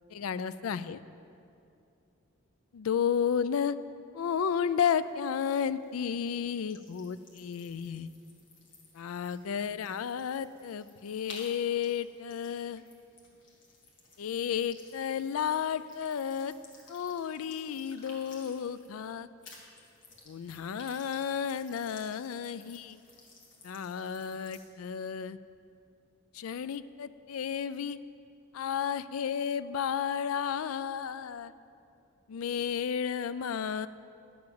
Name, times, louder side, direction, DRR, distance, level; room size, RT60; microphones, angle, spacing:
voice 1, 0.1-1.0 2.7-3.8 4.1-8.1 8.9-12.8 14.2-16.5 16.9-19.3 20.3-23.0 23.6-25.4 26.3-28.0 28.5-31.5 32.3-33.9, left 7 dB, 85° left, 15 dB, 0.4 m, -32 dB
sound 1, 4.9-19.1 19.4-24.7, left 2 dB, 60° left, 1.9 m, -56 dB
11.5 x 6.8 x 6.9 m, 2.6 s
head